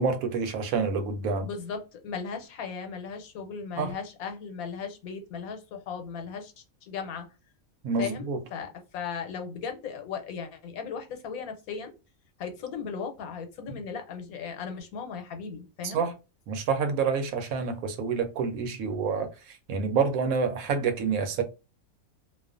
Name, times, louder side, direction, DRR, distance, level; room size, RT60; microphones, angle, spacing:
voice 1, 0.0-1.5 3.8-3.9 7.8-8.4 15.8-16.1 16.5-21.4, right 5 dB, 80° right, 1.0 m, -28 dB
voice 2, 1.4-6.5 6.8-7.3 8.0-11.9 12.4-16.0, left 6 dB, 90° left, 1.1 m, -37 dB
2.4 x 2.3 x 2.4 m
omnidirectional pair, 1.5 m